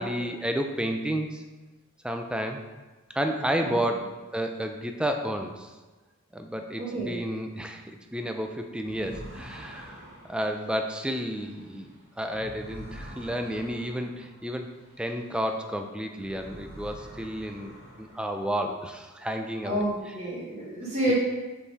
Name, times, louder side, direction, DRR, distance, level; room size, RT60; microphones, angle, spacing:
voice 1, 0.0-1.4 2.0-2.6 3.1-4.1 4.3-5.7 6.3-11.9 12.2-14.7 15.0-17.7 18.0-19.8 21.1-21.2, equal, 5° right, 5 dB, 0.4 m, -31 dB
voice 2, 6.8-7.2 19.6-21.1, right 1 dB, 30° right, -6 dB, 1.3 m, -30 dB
sound 1, 8.8-15.7 16.0-18.7, equal, 70° right, 1.9 m, -46 dB
5.5 x 4.4 x 4.7 m, 1.2 s
head